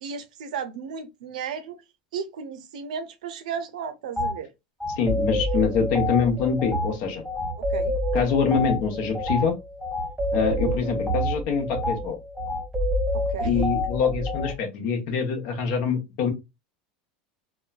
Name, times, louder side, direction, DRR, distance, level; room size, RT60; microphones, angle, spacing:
voice 1, 0.0-1.8 2.1-4.5 7.6-8.0 13.1-13.7, right 6 dB, 85° right, 0.5 m, -34 dB
sound 1, 4.2-4.3 4.8-14.5, left 1 dB, 5° right, 0.9 m, -27 dB
voice 2, 5.0-7.2 8.1-9.5 10.3-12.2 13.4-16.3, left 6 dB, 60° left, 0.8 m, -25 dB
3.0 x 2.1 x 2.2 m
supercardioid pair, 110°, 4 cm